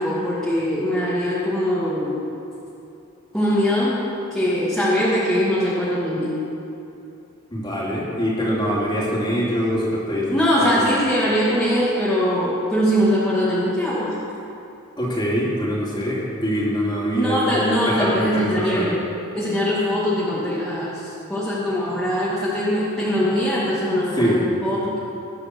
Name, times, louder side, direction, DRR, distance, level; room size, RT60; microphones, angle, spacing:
voice 1, 0.0-2.2 3.3-4.0 4.3-6.3 10.3-14.2 17.1-19.0 19.3-25.0, equal, 5° left, -10 dB, 2.3 m, -22 dB
voice 2, 7.5-10.3 10.7-10.8 15.0-19.0 24.1-24.4, equal, 20° left, -5 dB, 3.2 m, -23 dB
21.5 x 8.7 x 6.3 m, 2.8 s
head